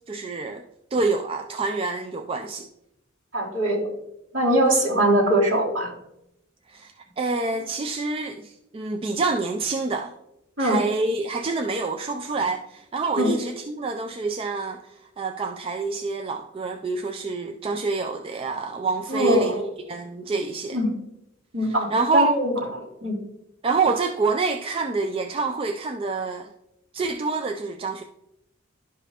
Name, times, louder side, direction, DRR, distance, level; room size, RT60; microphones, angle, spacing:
voice 1, 0.1-0.6 0.9-2.7 6.7-10.1 10.6-20.8 21.9-22.4 23.6-26.5 26.9-28.0, right 3 dB, 25° right, 5 dB, 0.3 m, -27 dB
voice 2, 3.3-3.9 4.3-5.9 10.6-10.8 13.2-13.3 19.1-19.6 20.7-20.9 21.5-22.6 23.0-23.2, right 1 dB, 60° right, -5 dB, 2.6 m, -21 dB
12.0 x 5.0 x 2.9 m, 0.83 s
head